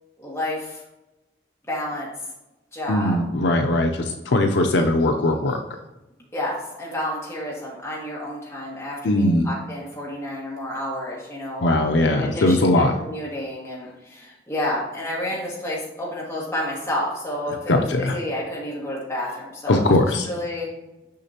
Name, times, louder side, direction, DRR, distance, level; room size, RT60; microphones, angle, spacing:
voice 1, 0.2-0.8 1.7-2.1 2.7-3.2 6.3-11.7 12.1-12.7 13.0-19.9 20.3-20.7, left 1 dB, 15° left, -5 dB, 1.7 m, -30 dB
voice 2, 2.9-5.6 9.0-9.5 11.6-12.9 17.7-18.1 19.7-20.3, left 1 dB, 80° left, 4 dB, 0.6 m, -20 dB
6.5 x 5.8 x 2.8 m, 0.99 s
head